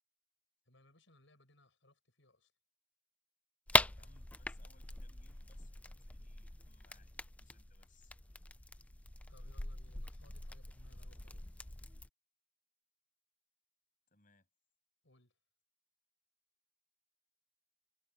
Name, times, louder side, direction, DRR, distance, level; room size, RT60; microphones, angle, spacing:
voice 1, 0.7-2.5 9.3-11.7 15.0-15.4, left 1 dB, 65° left, 7.8 m, -66 dB
sound 1, 3.7-12.1, left 2 dB, 5° left, 0.3 m, -39 dB
voice 2, 3.9-7.1 7.4-8.1 14.1-14.5, left 3 dB, 40° left, 7.4 m, -70 dB
head